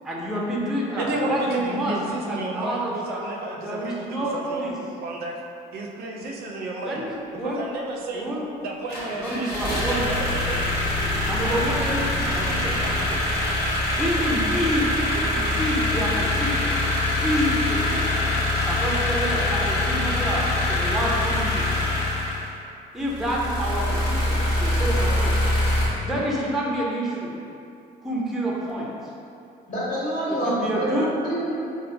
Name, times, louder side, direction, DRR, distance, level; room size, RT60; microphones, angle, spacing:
voice 1, 0.0-2.0 2.3-3.2 3.6-4.8 6.8-7.6 8.1-8.5 9.2-10.0 11.3-13.2 14.0-16.8 17.2-18.4 18.6-21.7 22.9-25.4 26.0-27.3 28.0-28.9 30.3-31.1, equal, ahead, -4 dB, 0.5 m, -28 dB
voice 2, 0.9-4.7 5.0-5.4 5.7-7.0 7.4-8.2 8.6-10.6, right 2 dB, 65° right, 0 dB, 0.4 m, -32 dB
sound 1, 8.9-22.5 23.0-25.9, left 1 dB, 70° left, 1.0 m, -24 dB
voice 3, 29.7-31.6, right 1 dB, 50° left, -9 dB, 1.3 m, -27 dB
4.3 x 2.0 x 2.5 m, 2.6 s
cardioid pair, 110°, 17 cm